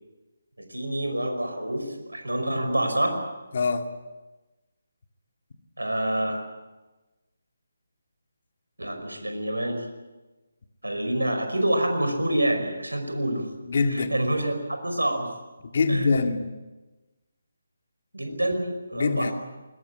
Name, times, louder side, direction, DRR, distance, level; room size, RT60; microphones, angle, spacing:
voice 1, 0.6-3.2 5.8-6.4 8.8-9.9 10.8-13.5 14.1-14.5 14.8-15.3 15.9-16.1 18.1-19.3, right 1 dB, 85° right, 5 dB, 5.3 m, -27 dB
voice 2, 3.5-3.9 13.6-14.1 15.7-16.5 18.9-19.3, left 4 dB, 50° left, 6 dB, 2.3 m, -24 dB
21.0 x 20.5 x 8.6 m, 1.2 s
figure-of-eight pair, 150°, 0 cm